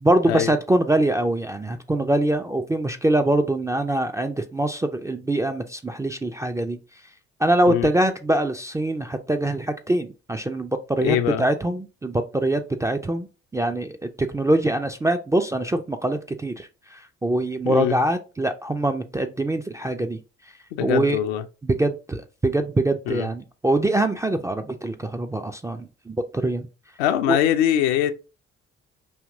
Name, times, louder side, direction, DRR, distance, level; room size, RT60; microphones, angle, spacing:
voice 1, 0.0-6.8 7.4-13.3 13.5-20.2 20.8-21.2 21.6-26.7 27.3-27.4, right 1 dB, 10° right, 0.3 m, -23 dB
voice 2, 11.0-11.4 17.6-18.0 20.7-21.4 23.1-23.3 27.0-28.1, left 11 dB, 65° left, 0.5 m, -22 dB
4.8 x 2.8 x 2.6 m
figure-of-eight pair, 45°, 36 cm